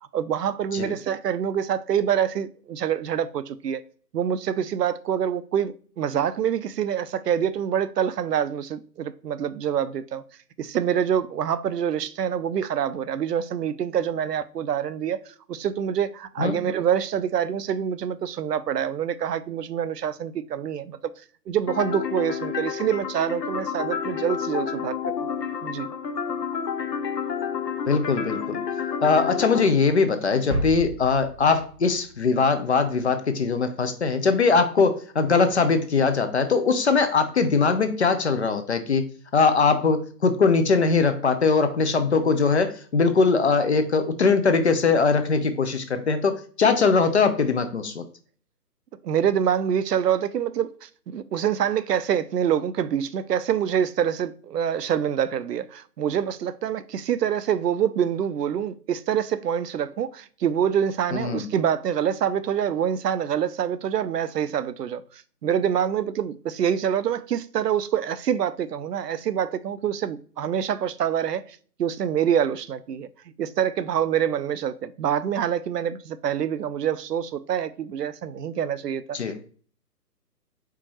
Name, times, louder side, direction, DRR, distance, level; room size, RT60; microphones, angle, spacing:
voice 1, 0.1-3.8 4.1-10.2 10.6-21.0 21.5-24.9 25.6-25.9 49.0-73.1 73.4-79.2, right 9 dB, 75° right, 0.5 m, -26 dB
sound 1, 21.7-29.7, left 7 dB, 80° left, 0.8 m, -30 dB
voice 2, 27.9-28.6 29.0-39.0 39.3-48.0 61.1-61.5 79.1-79.4, left 4 dB, 45° left, 0.5 m, -21 dB
sound 2, 30.5-33.2, equal, 20° right, 0.4 m, -33 dB
4.6 x 3.6 x 3.0 m
figure-of-eight pair, 140°, 49 cm